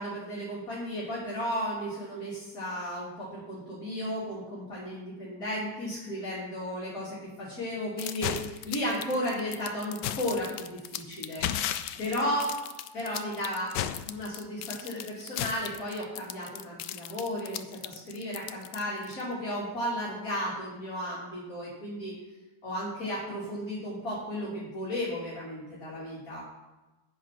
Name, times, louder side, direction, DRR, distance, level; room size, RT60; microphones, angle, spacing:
voice 1, 0.0-11.5 12.0-12.5 12.9-13.7 14.0-22.1 22.6-26.4, equal, 55° left, -9 dB, 3.6 m, -34 dB
sound 1, 8.0-19.2, left 11 dB, 80° left, 1.2 m, -35 dB
9.6 x 9.1 x 6.0 m, 1.1 s
omnidirectional pair, 1.9 m